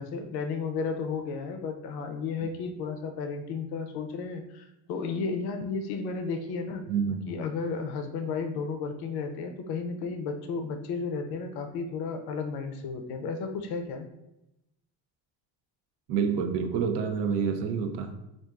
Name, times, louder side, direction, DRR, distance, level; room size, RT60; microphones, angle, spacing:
voice 1, 0.0-6.8 7.3-14.1, left 4 dB, 70° left, 5 dB, 0.6 m, -33 dB
voice 2, 6.9-7.2 16.1-18.2, right 6 dB, 85° right, 6 dB, 0.6 m, -28 dB
4.4 x 2.4 x 2.4 m, 0.90 s
cardioid pair, 140°, 40 cm